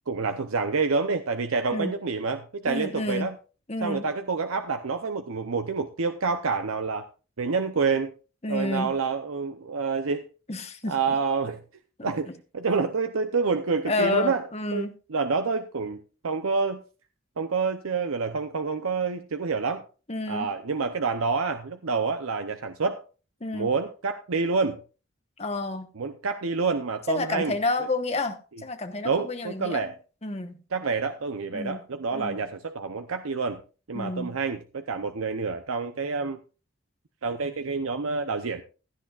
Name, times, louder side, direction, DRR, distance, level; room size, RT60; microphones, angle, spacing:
voice 1, 0.1-3.4 3.8-7.1 7.4-8.1 8.5-10.3 10.9-11.6 12.0-14.5 14.7-16.8 17.4-19.8 20.3-23.0 23.5-24.8 26.0-27.9 29.0-29.9 30.7-33.6 33.9-36.4 37.2-38.6, right 4 dB, 85° right, 8 dB, 0.7 m, -28 dB
voice 2, 2.7-3.3 3.7-4.0 8.4-8.9 10.5-10.9 12.0-12.1 13.8-14.9 20.1-20.5 23.4-23.7 25.4-25.9 27.1-29.9 30.2-30.5 31.5-31.8 32.1-32.4 33.9-34.3, left 2 dB, 30° left, 7 dB, 1.1 m, -29 dB
16.0 x 11.0 x 2.4 m, 0.35 s
head